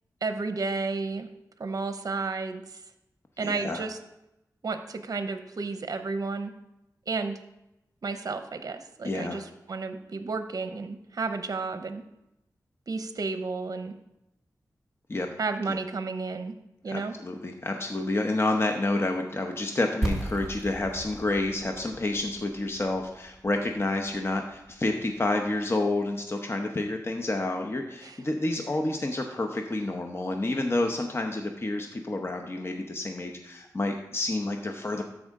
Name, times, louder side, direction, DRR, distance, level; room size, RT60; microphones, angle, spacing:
voice 1, 0.2-1.3 1.6-2.8 3.4-4.0 4.6-6.5 7.1-7.4 8.0-12.0 12.9-13.9 15.4-16.5 16.8-17.2 28.0-28.2, right 4 dB, 60° right, 8 dB, 0.7 m, -32 dB
voice 2, 3.4-3.9 9.0-9.4 15.1-15.3 15.7-15.8 16.9-35.0, left 2 dB, 35° left, 3 dB, 0.8 m, -29 dB
sound 1, 20.0-25.8, right 1 dB, 10° right, 1.8 m, -37 dB
13.0 x 4.9 x 3.6 m, 0.88 s
wide cardioid pair, 65°, 7 cm